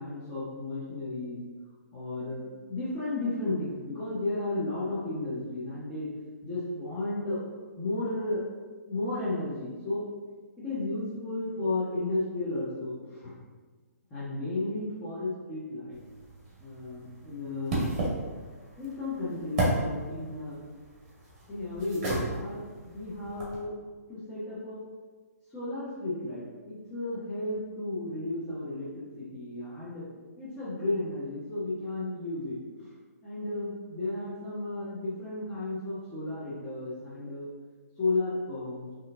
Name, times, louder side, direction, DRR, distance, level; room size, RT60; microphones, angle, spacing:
voice 1, 0.0-1.4 1.9-6.1 6.4-7.4 7.8-8.4 8.9-10.1 10.6-13.3 14.1-16.0 16.6-17.8 18.8-20.6 21.5-23.7 24.1-24.8 25.5-30.0 30.4-32.9 33.2-37.5 38.0-38.9, left 2 dB, 15° left, -12 dB, 1.1 m, -33 dB
sound 1, 15.9-23.6, right 2 dB, 30° right, 1.4 m, -34 dB
5.4 x 3.0 x 2.5 m, 1.4 s
figure-of-eight pair, 130°, 9 cm